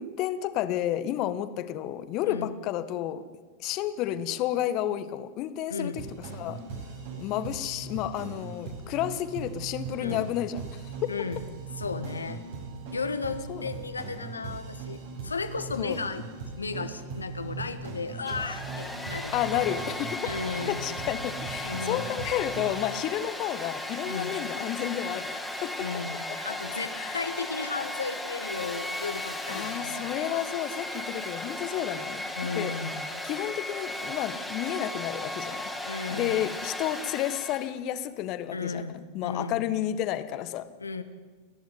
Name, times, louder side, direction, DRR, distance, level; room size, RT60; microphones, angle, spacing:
voice 1, 0.0-3.2 3.6-6.6 7.2-10.9 13.5-13.7 15.8-16.0 19.3-20.2 20.7-25.9 26.3-26.4 26.9-27.2 29.5-32.8 33.2-35.7 36.1-40.7, left 12 dB, 40° left, 12 dB, 1.5 m, -31 dB
voice 2, 5.7-6.0 10.0-10.3 11.1-11.4 11.8-12.5 12.9-16.3 16.6-19.4 20.2-21.0 21.6-22.1 24.1-24.4 25.8-30.1 32.4-33.0 35.9-36.5 38.5-39.7 40.8-41.0, left 4 dB, 80° left, 10 dB, 1.7 m, -34 dB
sound 1, 5.9-22.8, right 4 dB, 55° right, 7.2 m, -40 dB
Domestic sounds home sounds, 18.1-37.7, left 1 dB, ahead, 3.2 m, -36 dB
30.0 x 11.5 x 9.6 m, 1.4 s
figure-of-eight pair, 95°, 0 cm